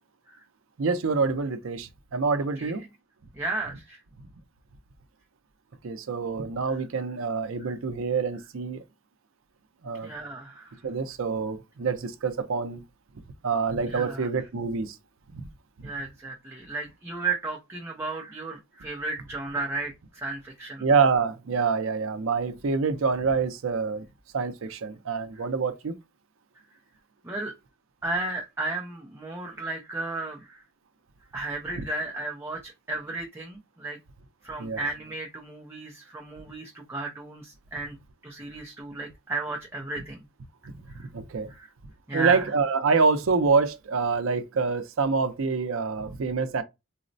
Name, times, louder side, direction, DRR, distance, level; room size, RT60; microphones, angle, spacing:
voice 1, 0.8-2.9 5.8-8.8 9.8-10.1 10.8-12.8 13.4-14.9 20.8-24.0 24.3-25.9 34.6-34.8 41.1-41.5 42.1-46.6, right 4 dB, 70° right, 0.5 m, -26 dB
voice 2, 3.3-4.0 6.7-6.8 7.6-7.7 10.0-10.8 13.9-14.5 15.8-20.9 25.3-25.5 27.2-27.5 28.0-30.6 31.3-34.0 34.4-38.0 38.2-40.2 40.9-41.1 41.5-41.7 42.1-42.5, right 3 dB, 10° right, 0.4 m, -34 dB
4.0 x 2.0 x 2.5 m
head